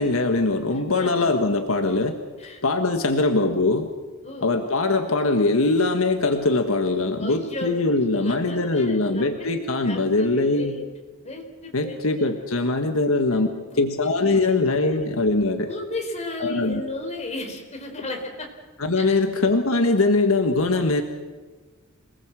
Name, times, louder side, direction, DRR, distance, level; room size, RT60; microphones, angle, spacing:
voice 1, 0.0-2.2 2.6-3.9 4.4-10.8 11.7-13.5 13.7-15.7 16.4-16.8 18.8-21.0, left 2 dB, 75° left, 5 dB, 1.6 m, -22 dB
voice 2, 0.7-1.3 2.4-2.6 4.2-4.5 7.2-9.5 9.8-10.8 11.2-12.4 13.6-13.9 14.3-14.5 14.7-15.0 15.7-18.5 19.0-19.2, left 1 dB, 35° left, 2 dB, 4.3 m, -35 dB
27.0 x 19.0 x 7.7 m, 1.3 s
head